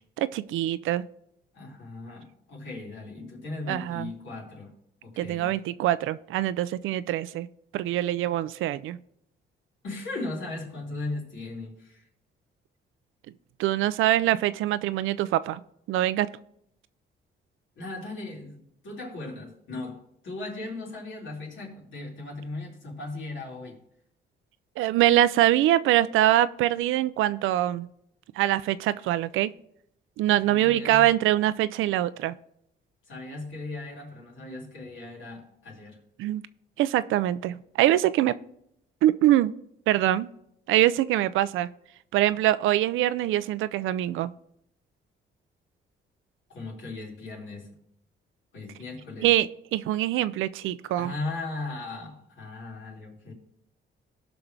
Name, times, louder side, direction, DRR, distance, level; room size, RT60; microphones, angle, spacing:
voice 1, 0.2-1.0 3.7-4.1 5.2-7.5 7.7-9.0 13.6-15.6 15.9-16.3 24.8-27.9 28.4-29.5 30.2-32.3 36.2-36.4 36.8-38.3 39.0-39.5 39.9-40.3 40.7-41.7 42.1-44.3 49.2-51.1, right 13 dB, 85° right, 15 dB, 0.5 m, -24 dB
voice 2, 1.5-4.7 5.0-5.6 9.8-12.1 17.8-23.8 30.4-31.1 33.1-36.0 46.5-47.8 48.5-49.3 51.0-53.3, left 2 dB, 70° left, -3 dB, 3.7 m, -37 dB
18.0 x 5.9 x 3.4 m, 0.74 s
cardioid pair, 90°, 20 cm